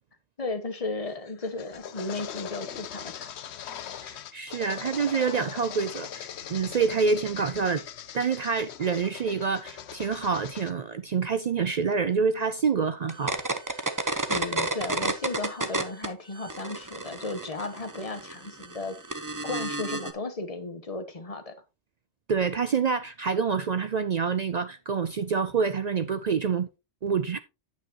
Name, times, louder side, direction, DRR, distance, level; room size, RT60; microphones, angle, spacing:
voice 1, 0.4-3.3 14.3-21.5, left 2 dB, 30° left, 1.1 m, -35 dB
sound 1, 1.1-10.7, left 9 dB, 65° left, 0.9 m, -40 dB
voice 2, 4.0-7.8 8.1-13.4 22.3-26.7 27.0-27.4, right 5 dB, 70° right, 0.4 m, -27 dB
sound 2, 13.1-16.1 16.4-20.1, right 2 dB, 20° right, 0.7 m, -31 dB
9.2 x 8.2 x 2.9 m
omnidirectional pair, 1.3 m